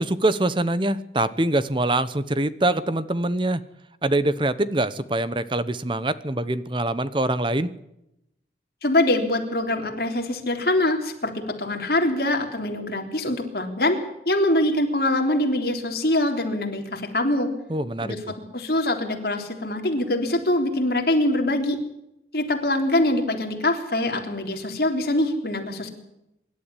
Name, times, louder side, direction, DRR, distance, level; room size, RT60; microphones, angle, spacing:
voice 1, 0.0-3.6 4.0-7.7 17.7-18.2, right 1 dB, 30° right, 14 dB, 1.0 m, -24 dB
voice 2, 8.8-14.0 14.3-17.5 18.0-18.2 18.5-21.8 22.3-25.9, left 1 dB, 60° left, 3 dB, 3.6 m, -23 dB
25.0 x 12.0 x 10.0 m, 0.86 s
head